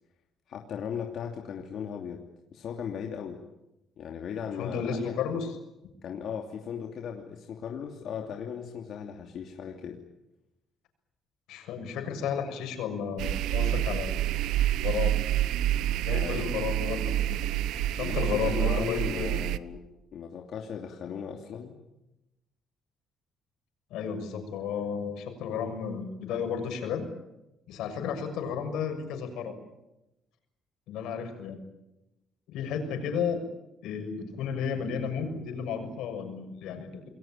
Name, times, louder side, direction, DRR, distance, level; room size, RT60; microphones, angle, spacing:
voice 1, 0.5-2.2 2.5-3.4 4.0-5.2 6.0-10.0 16.1-16.5 18.0-19.8 20.1-21.7, left 7 dB, 55° left, 1 dB, 2.8 m, -37 dB
voice 2, 4.6-5.5 11.5-14.2 14.8-15.2 16.0-17.4 17.9-19.3 23.9-27.1 27.7-29.6 30.9-31.6 32.5-33.4 33.8-37.1, left 7 dB, 80° left, 6 dB, 6.7 m, -33 dB
sound 1, 13.2-19.6, right 13 dB, 80° right, 1.0 m, -28 dB
28.0 x 21.5 x 9.0 m, 0.95 s
cardioid pair, 140°, 0 cm